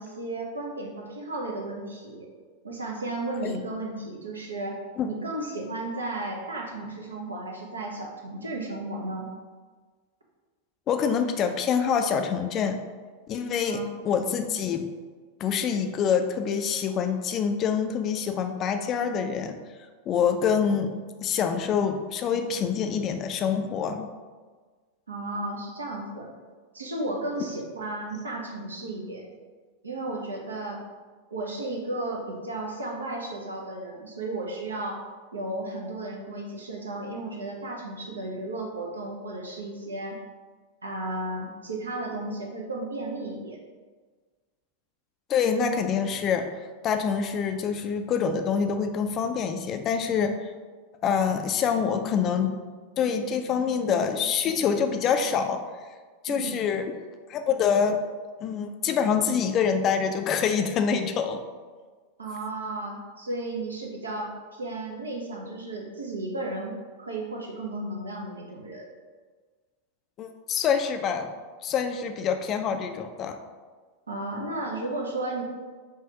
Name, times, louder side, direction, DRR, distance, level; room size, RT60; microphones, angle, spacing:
voice 1, 0.0-2.3 2.6-9.3 13.7-14.1 25.1-26.3 26.7-29.3 29.8-30.8 31.3-35.0 35.3-40.2 40.8-43.6 56.3-56.6 62.2-68.9 74.1-75.4, right 2 dB, 75° right, 0 dB, 0.7 m, -34 dB
voice 2, 10.9-12.8 13.3-14.9 15.4-19.6 20.1-24.1 45.3-46.5 46.8-50.5 51.0-52.5 53.0-55.6 56.2-56.9 57.3-58.0 58.4-61.4 70.2-71.3 71.6-73.4, left 7 dB, 30° left, 6 dB, 0.4 m, -26 dB
5.7 x 2.4 x 2.9 m, 1.4 s
figure-of-eight pair, 90°, 0 cm